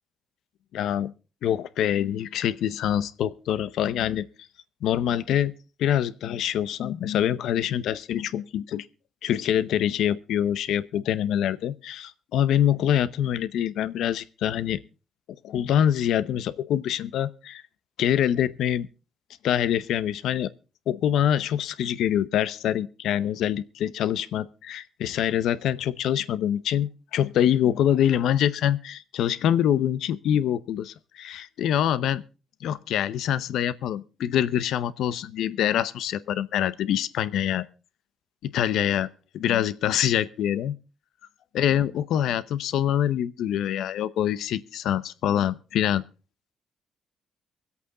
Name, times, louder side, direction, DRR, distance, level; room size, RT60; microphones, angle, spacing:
voice 1, 0.7-1.1 1.4-4.2 4.8-5.5 5.8-8.9 9.2-14.8 15.4-17.6 18.0-18.9 19.4-20.5 20.9-32.2 32.6-37.6 38.4-39.1 39.3-40.8 41.5-46.0, left 10 dB, 80° left, 0.7 m, -25 dB
24.0 x 8.3 x 3.8 m
cardioid pair, 90°, 0 cm